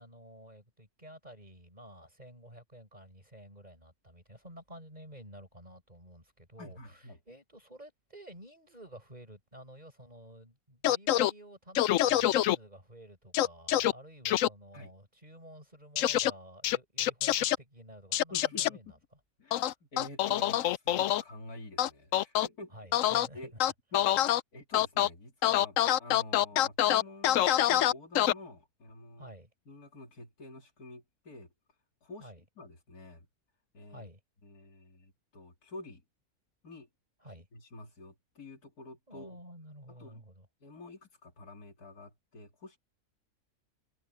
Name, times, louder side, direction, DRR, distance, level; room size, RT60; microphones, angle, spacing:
voice 1, 0.0-19.0 22.7-23.6 29.2-29.5 32.2-32.4 33.9-34.2 37.2-37.5 39.1-40.5, right 1 dB, 25° right, 7.7 m, -51 dB
voice 2, 6.6-7.2 14.7-14.9 18.3-18.8 19.4-22.8 23.3-23.5 23.9-24.1 24.5-29.3 29.7-31.5 32.0-32.3 32.6-33.3 33.7-34.1 34.4-36.0 36.6-36.9 37.5-39.4 39.9-40.2 40.6-42.8, left 2 dB, 90° left, 3.2 m, -48 dB
sound 1, 10.8-11.3 11.8-12.6 13.3-13.9 14.3-14.5 16.0-16.3 16.6-17.6 18.1-18.7 19.5-21.2 21.8-22.5 22.9-23.3 23.6-24.4 24.7-25.1 25.4-28.3, left 12 dB, 70° left, 0.9 m, -26 dB
omnidirectional pair, 1.6 m